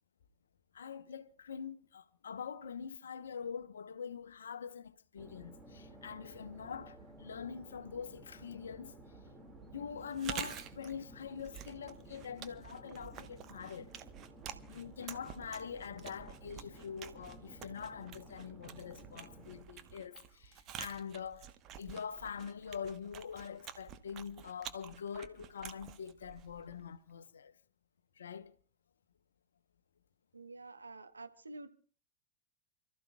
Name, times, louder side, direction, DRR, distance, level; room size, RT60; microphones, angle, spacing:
voice 1, 0.7-8.9 9.7-13.9 14.7-27.5 28.2-28.5, left 7 dB, 65° left, 0.9 m, -44 dB
sound 1, 5.2-19.6, right 2 dB, 15° right, 2.2 m, -55 dB
Chewing mastication, 10.0-26.9, right 10 dB, 35° right, 1.1 m, -49 dB
voice 2, 30.3-31.7, right 2 dB, 80° right, 1.2 m, -49 dB
29.5 x 14.0 x 2.3 m
figure-of-eight pair, 90°, 0 cm